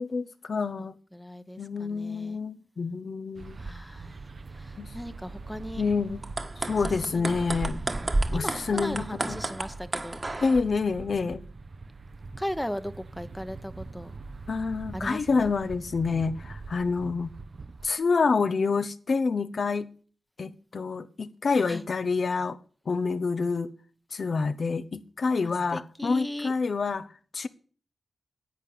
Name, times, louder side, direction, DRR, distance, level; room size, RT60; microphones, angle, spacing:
voice 1, 0.0-1.0 1.6-3.6 4.8-4.9 5.8-6.2 6.6-7.8 8.3-9.4 10.4-11.4 14.5-17.3 17.8-19.9 20.4-22.6 22.9-23.7 24.1-27.1 27.3-27.5, left 4 dB, 65° left, 1.0 m, -27 dB
voice 2, 1.1-2.4 3.6-4.2 4.6-5.8 7.0-7.3 8.3-10.2 12.4-14.1 14.9-15.5 21.7-21.8 25.4-26.5, equal, 5° left, 1.0 m, -37 dB
sound 1, 3.4-17.9, right 3 dB, 55° right, 0.9 m, -42 dB
sound 2, 6.1-10.6, right 2 dB, 35° right, 1.5 m, -31 dB
10.5 x 8.3 x 8.8 m
cardioid pair, 60°, 0 cm